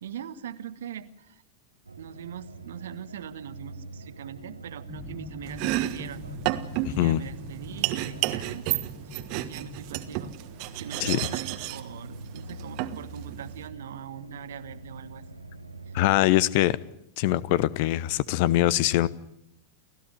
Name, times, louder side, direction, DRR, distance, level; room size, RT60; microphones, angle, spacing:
voice 1, 0.0-1.4 2.0-6.2 6.8-8.7 9.0-10.4 10.8-15.2 15.9-16.0, right 8 dB, 60° right, 1.4 m, -41 dB
sound 1, 1.9-16.1, right 2 dB, 80° right, 1.7 m, -45 dB
sound 2, 4.9-10.4, left 3 dB, 10° left, 1.4 m, -44 dB
Domestic sounds home sounds, 5.4-13.7, right 16 dB, 45° right, 1.4 m, -32 dB
voice 2, 6.8-7.2 11.0-11.2 15.9-16.8 17.2-19.1, left 15 dB, 50° left, 0.9 m, -23 dB
30.0 x 15.0 x 9.0 m
figure-of-eight pair, 90°, 0 cm